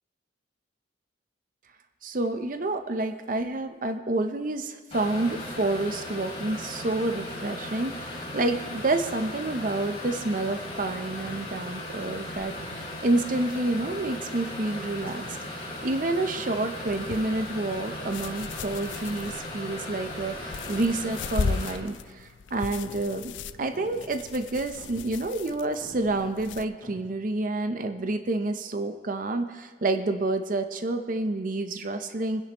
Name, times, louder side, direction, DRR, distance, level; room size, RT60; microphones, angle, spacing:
voice 1, 2.0-23.3 23.6-32.5, right 2 dB, 45° right, 7 dB, 0.6 m, -29 dB
sound 1, 4.9-21.8, left 1 dB, 30° left, 3.3 m, -37 dB
sound 2, 11.2-11.9 12.5-13.1 13.8-14.4 15.0-15.7 16.4-16.9 17.5-17.9 18.6-19.5 19.9-20.5 20.8-20.9 21.5-21.7 22.2-22.3 22.8-24.4 24.8-25.2 25.5-25.6 25.8-27.1, equal, 10° left, 3.6 m, -50 dB
sound 3, 16.9-26.7, left 5 dB, 75° left, 0.4 m, -37 dB
23.5 x 10.5 x 3.0 m, 1.5 s
head